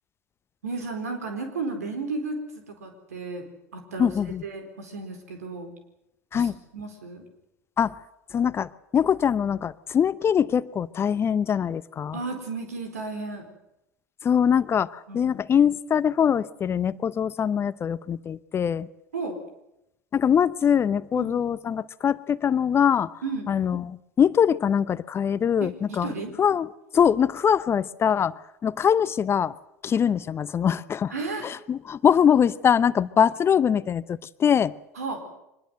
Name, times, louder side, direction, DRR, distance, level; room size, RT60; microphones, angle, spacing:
voice 1, 0.6-3.5 3.7-4.1 4.4-5.7 6.3-7.2 12.1-13.4 15.1-15.3 19.1-19.4 21.1-21.3 23.2-23.5 25.6-26.3 31.1-31.5 34.9-35.2, right 3 dB, 75° right, 6 dB, 4.4 m, -33 dB
voice 2, 4.0-4.4 6.3-6.5 7.8-7.9 8.3-12.2 14.2-18.9 20.1-23.1 23.5-26.1 26.4-26.7 26.9-28.3 28.6-29.5 29.8-31.1 31.4-34.7, left 8 dB, 30° left, 17 dB, 0.8 m, -23 dB
24.0 x 20.5 x 7.8 m, 0.84 s
figure-of-eight pair, 75°, 8 cm